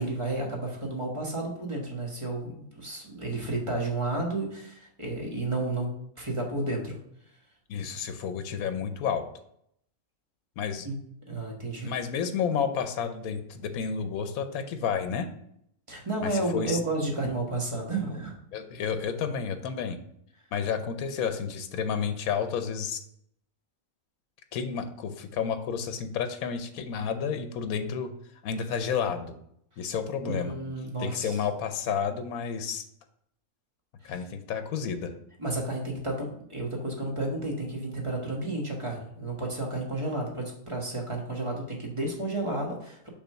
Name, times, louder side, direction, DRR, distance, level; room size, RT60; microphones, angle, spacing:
voice 1, 0.0-5.9 6.2-7.0 10.8-11.0 11.3-11.9 15.9-18.3 30.2-31.4 34.0-34.1 35.4-43.1, right 2 dB, 20° right, -1 dB, 1.3 m, -32 dB
voice 2, 7.7-9.3 10.6-10.9 11.8-15.3 16.2-16.8 18.5-20.0 20.5-23.0 24.5-28.2 28.4-29.4 29.8-30.6 31.0-32.8 34.0-35.1, left 7 dB, 80° left, 9 dB, 1.1 m, -31 dB
6.1 x 3.4 x 5.6 m, 0.71 s
omnidirectional pair, 1.5 m